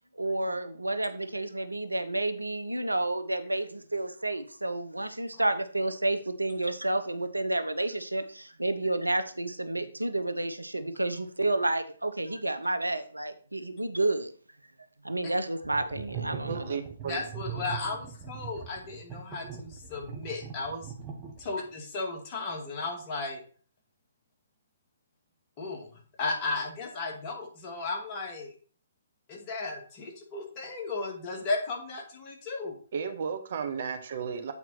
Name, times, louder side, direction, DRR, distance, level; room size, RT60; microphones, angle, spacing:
voice 1, 0.1-14.3 15.0-16.8, right 2 dB, 85° right, 10 dB, 0.7 m, -30 dB
sound 1, 15.6-21.7, right 7 dB, 15° right, 1.5 m, -40 dB
voice 2, 16.5-17.2 32.9-34.5, right 6 dB, 50° right, 7 dB, 1.1 m, -34 dB
voice 3, 17.0-20.9 21.4-23.4 25.6-25.9 26.2-28.5 29.3-32.8, left 3 dB, 30° left, 1 dB, 2.0 m, -35 dB
8.3 x 4.2 x 4.2 m, 0.43 s
figure-of-eight pair, 130°, 0 cm